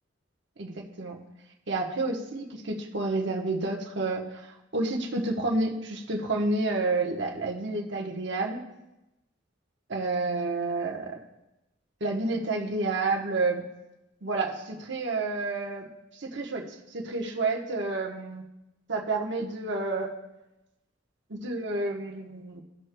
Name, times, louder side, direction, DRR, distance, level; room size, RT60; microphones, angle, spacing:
voice 1, 0.6-1.2 1.7-8.6 9.9-11.2 12.0-13.6 14.2-15.9 16.2-16.6 16.9-18.4 18.9-20.1 21.3-22.6, right 2 dB, 60° right, 0 dB, 1.1 m, -30 dB
16.0 x 6.4 x 2.2 m, 0.95 s
head